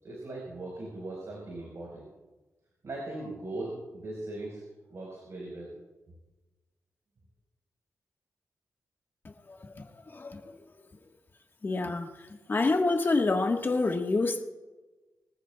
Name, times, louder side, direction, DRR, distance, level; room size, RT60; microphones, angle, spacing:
voice 1, 0.0-2.1 2.8-4.6 4.9-5.7, right 2 dB, 55° right, 4.6 m, -39 dB
voice 2, 9.5-10.5 11.6-12.1 12.5-14.4, left 3 dB, 35° left, 1.4 m, -27 dB
24.0 x 14.5 x 2.3 m
wide cardioid pair, 115°, 6 cm